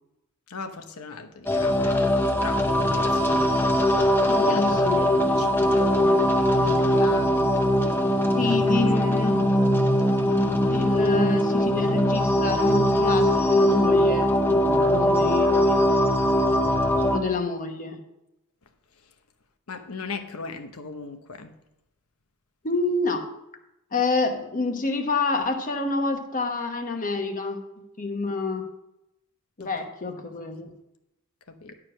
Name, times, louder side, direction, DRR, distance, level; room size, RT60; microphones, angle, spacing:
voice 1, 0.5-2.0 2.4-3.6 4.3-7.6 8.4-8.8 9.2-9.8 19.7-21.5 29.6-29.7 31.5-31.8, left 4 dB, 85° left, 1.0 m, -38 dB
sound 1, 1.5-17.2, left 1 dB, 10° left, 0.7 m, -21 dB
voice 2, 4.3-5.2 8.4-9.4 10.4-15.8 17.0-18.0 22.6-23.3 23.9-27.6 28.0-28.7 29.6-30.7, left 3 dB, 40° left, 1.0 m, -28 dB
11.0 x 4.9 x 6.1 m
head